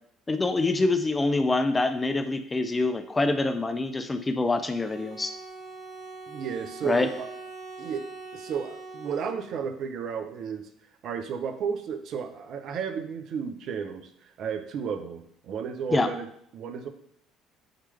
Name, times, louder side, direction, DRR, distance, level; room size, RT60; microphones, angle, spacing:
voice 1, 0.3-5.4 6.8-7.1 15.9-16.1, left 2 dB, 25° left, 9 dB, 0.5 m, -25 dB
Bowed string instrument, 4.5-9.8, right 3 dB, 20° right, 1.9 m, -43 dB
voice 2, 6.3-7.3 7.8-8.1 8.3-10.7 11.0-16.3 16.5-16.9, right 6 dB, 60° right, 7 dB, 0.8 m, -33 dB
8.9 x 3.3 x 3.3 m, 0.70 s
hypercardioid pair, 60°, 0 cm